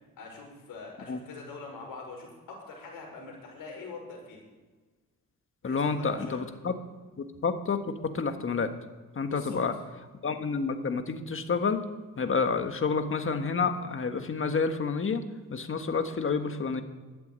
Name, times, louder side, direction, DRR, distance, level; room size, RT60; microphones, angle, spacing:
voice 1, 0.2-4.4 5.6-6.4 9.2-9.6, left 4 dB, 80° left, -1 dB, 5.8 m, -43 dB
voice 2, 5.6-6.7 7.2-8.8 9.1-9.7 10.2-11.8 12.2-15.2 15.5-16.8, left 5 dB, 40° left, 8 dB, 1.5 m, -29 dB
12.5 x 8.5 x 8.8 m, 1.3 s
cardioid pair, 85°, 33 cm